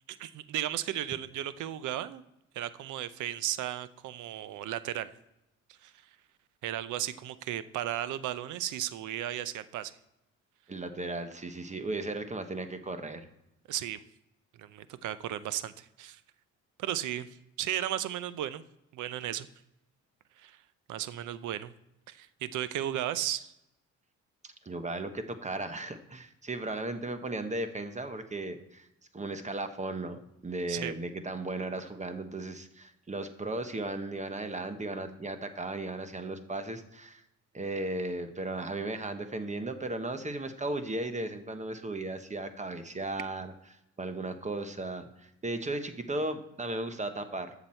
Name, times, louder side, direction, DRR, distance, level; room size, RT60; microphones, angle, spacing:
voice 1, 0.1-2.2 2.5-5.1 5.8-5.9 6.6-9.9 13.7-14.0 14.6-16.2 16.8-17.3 17.6-18.6 18.9-19.5 20.4-20.6 20.9-21.7 22.1-23.5 30.7-30.9, right 12 dB, 80° right, 15 dB, 0.7 m, -35 dB
voice 2, 10.7-13.3 24.4-28.9 29.1-37.2 37.5-43.5 44.0-47.5, right 2 dB, 25° right, 9 dB, 1.0 m, -36 dB
13.5 x 6.0 x 4.4 m, 0.86 s
cardioid pair, 90°, 30 cm